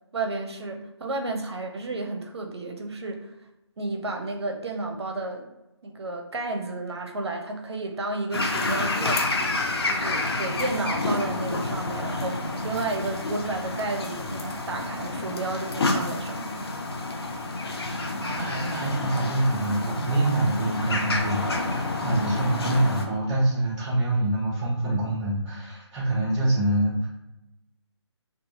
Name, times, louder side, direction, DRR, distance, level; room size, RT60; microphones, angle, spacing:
voice 1, 0.1-3.3 3.8-5.5 5.8-9.3 9.8-16.6, right 2 dB, 60° right, 3 dB, 0.6 m, -32 dB
sound 1, 8.3-23.1, left 2 dB, 55° left, 0.5 m, -29 dB
voice 2, 18.2-27.1, right 1 dB, 15° right, -8 dB, 0.9 m, -25 dB
2.6 x 2.4 x 2.7 m, 0.91 s
figure-of-eight pair, 155°, 15 cm